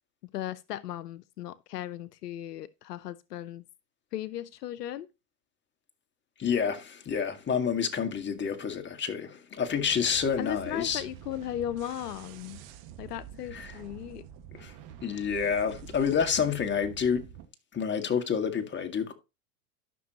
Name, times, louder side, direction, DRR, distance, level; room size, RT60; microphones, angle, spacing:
voice 1, 0.3-3.6 4.1-5.1 10.4-12.6 13.0-14.3, left 12 dB, 85° left, 0.7 m, -36 dB
voice 2, 6.4-11.0 13.5-13.7 14.6-14.7 15.0-17.3 17.7-19.1, left 7 dB, 25° left, 1.7 m, -29 dB
sound 1, 9.8-17.5, right 9 dB, 55° right, 1.7 m, -47 dB
13.0 x 6.1 x 2.9 m
hypercardioid pair, 95°, 46 cm